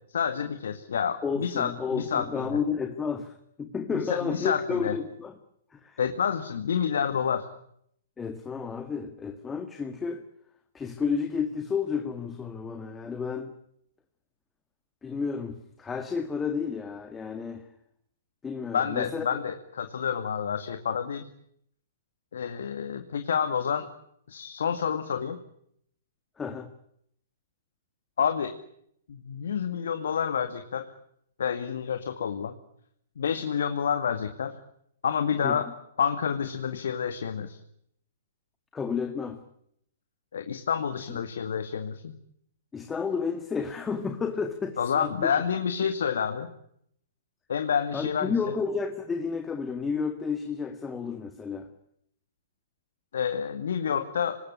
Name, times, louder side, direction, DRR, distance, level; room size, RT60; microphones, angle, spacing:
voice 1, 0.1-2.5 4.1-5.0 6.0-7.5 18.7-21.3 22.3-23.9 24.3-25.4 28.2-28.5 29.1-30.9 31.4-32.6 33.2-34.5 35.0-35.7 36.0-37.6 40.3-42.1 44.8-46.5 47.5-48.3 53.1-54.4, left 7 dB, 70° left, 8 dB, 2.1 m, -28 dB
voice 2, 1.2-5.4 5.7-6.0 8.2-10.3 10.7-13.5 15.0-17.7 18.4-19.3 26.4-26.7 35.4-35.7 38.7-39.4 41.1-41.2 42.7-45.3 47.9-51.7, left 5 dB, 15° left, 7 dB, 2.0 m, -31 dB
25.0 x 20.5 x 10.0 m, 0.72 s
hypercardioid pair, 125°, 0 cm